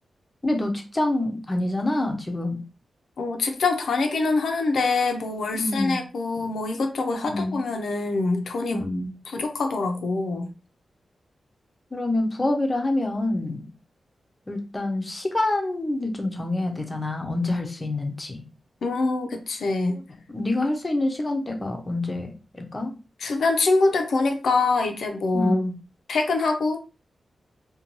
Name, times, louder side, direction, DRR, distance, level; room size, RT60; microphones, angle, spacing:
voice 1, 0.4-2.6 5.5-6.0 6.4-6.5 7.2-7.6 8.7-9.1 11.9-13.6 14.5-18.4 19.9-20.0 20.3-22.9 25.3-25.8, left 2 dB, 20° left, 2 dB, 0.5 m, -26 dB
voice 2, 3.2-8.8 9.3-10.5 18.8-20.0 23.2-25.6 26.1-26.8, left 3 dB, 75° left, 4 dB, 0.4 m, -24 dB
2.5 x 2.2 x 2.9 m, 0.32 s
wide cardioid pair, 160°, 0 cm